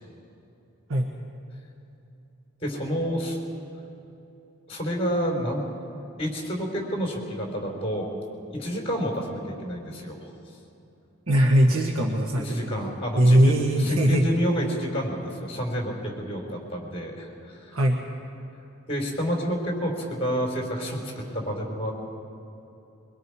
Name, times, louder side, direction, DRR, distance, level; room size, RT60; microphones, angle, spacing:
voice 1, 2.6-3.4 4.7-5.7 6.2-8.1 8.5-10.2 12.4-13.5 13.8-17.8 18.9-21.0 21.3-21.9, equal, 25° left, 0 dB, 4.1 m, -29 dB
voice 2, 11.3-12.7 13.2-14.3 17.7-18.0, right 1 dB, 75° right, 1 dB, 1.5 m, -20 dB
23.5 x 23.5 x 4.8 m, 2.8 s
head